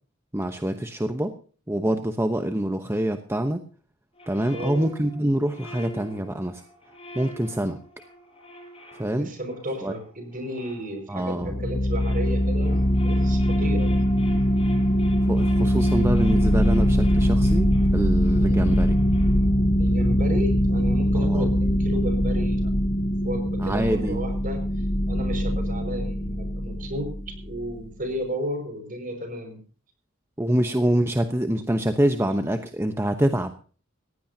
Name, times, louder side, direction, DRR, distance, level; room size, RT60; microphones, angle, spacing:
voice 1, 0.3-1.4 1.7-3.6 4.3-6.6 7.1-7.8 9.0-9.3 9.8-9.9 11.1-11.6 15.3-18.9 21.1-21.5 23.6-24.2 30.4-33.5, right 1 dB, 15° right, 6 dB, 1.0 m, -25 dB
sound 1, 4.2-11.4 11.8-19.7, equal, 30° left, 7.3 m, -41 dB
voice 2, 4.4-4.8 9.2-13.9 18.4-18.8 19.8-22.7 23.2-24.6 25.1-29.6, equal, 45° right, 6 dB, 5.8 m, -33 dB
sound 2, 11.4-27.7, equal, 45° left, 1.2 m, -22 dB
19.5 x 16.0 x 2.9 m, 0.39 s
head